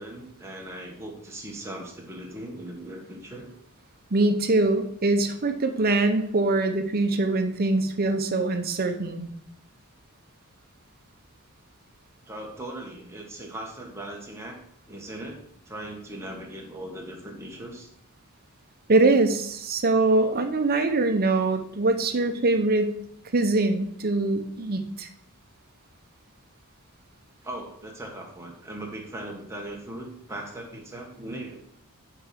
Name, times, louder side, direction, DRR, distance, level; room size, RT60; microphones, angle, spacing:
voice 1, 0.0-3.5 12.2-14.6 14.9-17.9 27.4-31.7, right 1 dB, 10° right, 0 dB, 1.4 m, -39 dB
voice 2, 4.1-9.3 18.9-23.0 23.3-25.1, right 2 dB, 45° right, 6 dB, 0.8 m, -23 dB
6.6 x 4.9 x 5.8 m, 0.70 s
head